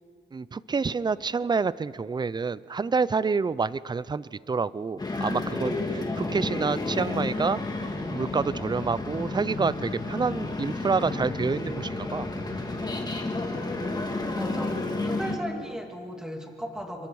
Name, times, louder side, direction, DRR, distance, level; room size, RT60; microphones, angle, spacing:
voice 1, 0.3-7.6 8.1-12.3, right 5 dB, 25° right, 19 dB, 0.4 m, -28 dB
sound 1, 5.0-15.4, left 2 dB, 20° left, 2.1 m, -31 dB
voice 2, 14.4-17.1, equal, 5° right, 2 dB, 2.4 m, -36 dB
26.5 x 24.0 x 4.8 m, 2.3 s
wide cardioid pair, 120°, 19 cm